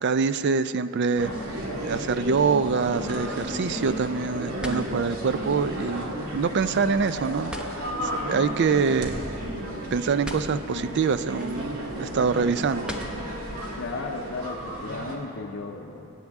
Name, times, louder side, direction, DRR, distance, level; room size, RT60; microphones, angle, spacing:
voice 1, 0.0-1.3 1.8-7.5 8.0-9.1 9.9-12.9, right 5 dB, 55° right, 13 dB, 0.4 m, -25 dB
sound 1, 1.2-13.5, equal, 5° right, 0.8 m, -44 dB
sound 2, 1.2-15.1, equal, 90° right, 1.9 m, -33 dB
voice 2, 13.8-16.1, left 3 dB, 55° left, 0 dB, 0.6 m, -35 dB
25.0 x 8.7 x 3.5 m, 2.8 s
head